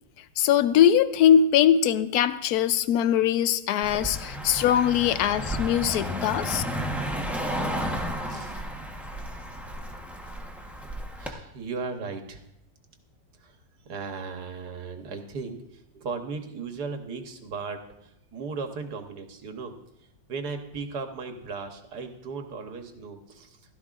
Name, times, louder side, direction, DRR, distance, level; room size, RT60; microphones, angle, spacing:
voice 1, 0.4-6.6, left 9 dB, 75° left, 13 dB, 0.9 m, -21 dB
Car passing by, 3.8-11.3, equal, ahead, 0.4 m, -33 dB
voice 2, 8.3-8.6 11.2-12.4 13.4-13.6 13.9-19.8 20.3-23.6, right 4 dB, 60° right, 5 dB, 1.6 m, -36 dB
16.0 x 13.0 x 2.5 m, 0.81 s
omnidirectional pair, 2.0 m